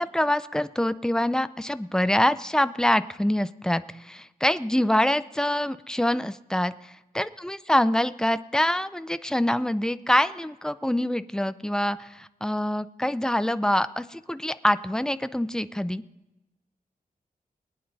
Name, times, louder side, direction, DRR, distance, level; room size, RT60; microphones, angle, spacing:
voice 1, 0.0-16.0, left 1 dB, 5° left, 13 dB, 0.4 m, -25 dB
22.0 x 9.7 x 2.7 m, 0.98 s
wide cardioid pair, 155°, 15 cm